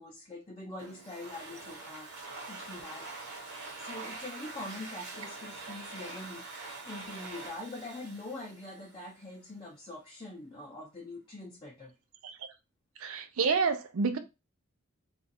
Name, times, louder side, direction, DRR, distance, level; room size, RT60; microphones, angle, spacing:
voice 1, 0.0-3.1 3.8-11.9, left 2 dB, 25° left, 0.5 m, -44 dB
Domestic sounds home sounds, 0.8-9.2, right 3 dB, 50° right, 1.0 m, -44 dB
voice 2, 13.0-14.2, right 5 dB, 70° right, 0.5 m, -28 dB
2.4 x 2.4 x 4.1 m
head